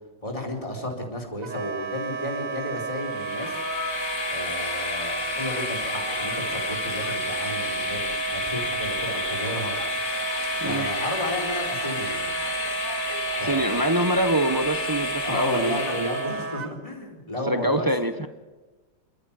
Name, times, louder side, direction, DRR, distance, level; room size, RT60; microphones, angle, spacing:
voice 1, 0.2-3.6 4.3-9.7 10.6-12.4 13.4-13.9 15.2-17.9, left 1 dB, 15° left, 0 dB, 4.4 m, -33 dB
Wind instrument woodwind instrument, 1.4-16.7, right 6 dB, 50° right, 1.3 m, -32 dB
Train, 3.0-16.5, left 6 dB, 45° left, 1.9 m, -31 dB
voice 2, 10.6-10.9 13.4-16.1 17.5-18.3, right 1 dB, 30° right, 9 dB, 0.3 m, -25 dB
28.5 x 13.5 x 9.0 m, 1.3 s
omnidirectional pair, 2.0 m